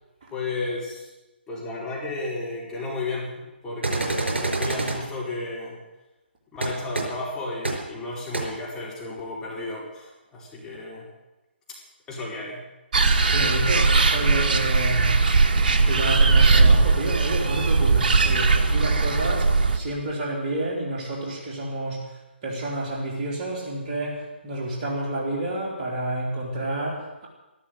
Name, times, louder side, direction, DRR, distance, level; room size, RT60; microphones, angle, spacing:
voice 1, 0.3-1.1 1.5-5.8 6.5-11.1 12.1-12.6, left 2 dB, 10° left, -5 dB, 4.5 m, -33 dB
sound 1, 3.8-5.0 6.6-6.7 6.9-7.0 7.6-7.7 8.3-8.4, right 2 dB, 70° right, 5.0 m, -26 dB
sound 2, 12.9-19.8, right 3 dB, 50° right, 1.5 m, -19 dB
voice 2, 13.3-15.1 15.8-27.3, right 1 dB, 35° right, -2 dB, 3.8 m, -29 dB
13.5 x 13.0 x 7.9 m, 1.0 s
figure-of-eight pair, 140°, 6 cm